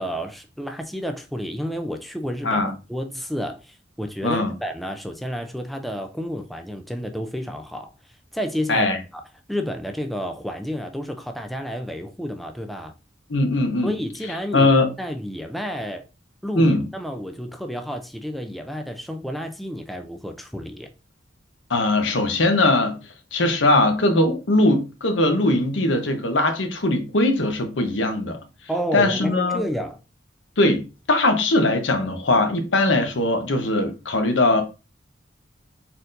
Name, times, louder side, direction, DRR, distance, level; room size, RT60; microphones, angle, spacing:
voice 1, 0.0-2.6 2.9-7.9 8.3-8.9 9.1-9.2 9.5-12.9 13.8-14.7 15.0-16.0 16.4-20.9 28.7-30.0, equal, ahead, 0.4 m, -30 dB
voice 2, 8.7-9.0 13.3-14.0 14.5-14.9 16.5-16.9 21.7-23.0 23.3-28.4 28.9-29.6 30.6-34.6, left 2 dB, 80° left, 0.9 m, -20 dB
4.4 x 3.9 x 2.5 m
head